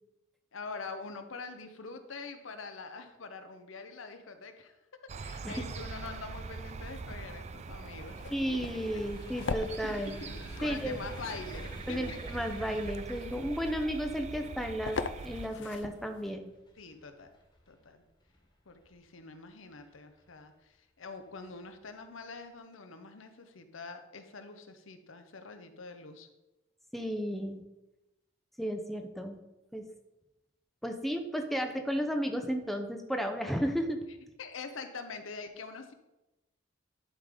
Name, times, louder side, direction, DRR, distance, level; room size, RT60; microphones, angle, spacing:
voice 1, 0.5-8.3 8.7-9.0 9.8-12.4 16.8-17.3 17.7-18.1 18.7-26.3 34.4-35.9, left 4 dB, 90° left, 8 dB, 0.9 m, -45 dB
sound 1, 5.1-15.5, right 4 dB, 35° right, 0.3 m, -43 dB
sound 2, 6.7-16.3, left 4 dB, 65° left, 0.5 m, -43 dB
sound 3, 7.9-19.0 19.7-20.4 21.2-21.4 21.7-21.9, left 1 dB, 25° left, 1.4 m, -52 dB
voice 2, 8.3-10.2 10.6-11.0 11.9-15.0 15.2-16.5 26.9-27.6 28.6-29.4 29.7-29.9 30.8-34.0, equal, ahead, 5 dB, 0.6 m, -33 dB
11.0 x 3.8 x 5.1 m, 0.97 s
head